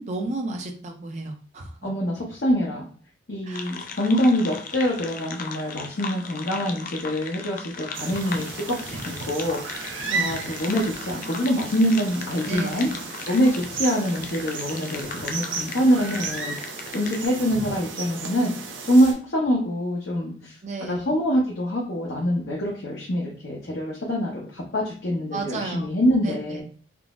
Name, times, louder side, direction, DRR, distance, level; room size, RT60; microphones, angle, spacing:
voice 1, 0.0-1.9 3.4-3.7 10.0-10.4 12.4-13.0 20.6-21.1 25.3-25.9 26.2-26.6, right 3 dB, 40° right, 3 dB, 0.5 m, -33 dB
voice 2, 1.8-2.8 3.3-9.9 10.1-12.9 13.3-18.5 18.8-26.6, equal, 60° left, -3 dB, 0.7 m, -25 dB
sound 1, 3.5-17.3, left 5 dB, 45° left, 0.3 m, -38 dB
sound 2, 7.9-19.1, right 4 dB, 85° right, 0.6 m, -34 dB
3.7 x 2.0 x 2.4 m, 0.42 s
head